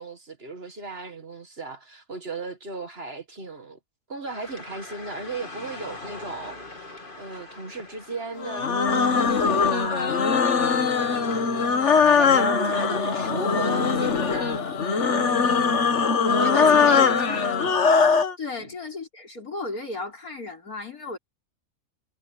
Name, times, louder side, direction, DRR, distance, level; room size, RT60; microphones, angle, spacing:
voice 1, 0.0-3.8 4.1-11.7 12.1-14.6 16.2-17.8 18.6-18.7, right 3 dB, 40° right, 1.9 m, -36 dB
sound 1, 4.3-14.7, left 2 dB, 35° left, 2.7 m, -44 dB
sound 2, 8.4-18.3, left 5 dB, 50° left, 1.6 m, -21 dB
voice 2, 15.1-15.7 16.4-17.4 18.4-21.2, left 3 dB, 75° left, 5.0 m, -35 dB
omnidirectional pair, 1.6 m